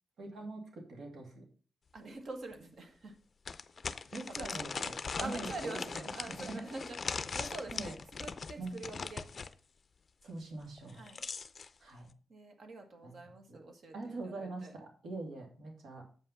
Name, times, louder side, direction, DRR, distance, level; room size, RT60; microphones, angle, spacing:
voice 1, 0.2-1.5 4.1-6.1 6.4-6.7 7.7-7.9 8.6-8.8 10.2-11.1 11.8-12.1 13.0-13.1 13.5-13.6 13.9-16.0, right 2 dB, 75° right, 1 dB, 2.5 m, -43 dB
voice 2, 1.9-3.2 4.1-4.7 5.2-9.3 10.9-11.2 12.3-14.8, right 2 dB, 55° right, 5 dB, 1.8 m, -46 dB
sound 1, 2.0-2.1 2.5-2.6 3.5-9.5 10.8-11.7, left 5 dB, 40° left, 0.5 m, -40 dB
7.8 x 5.5 x 5.8 m, 0.41 s
wide cardioid pair, 140°, 0 cm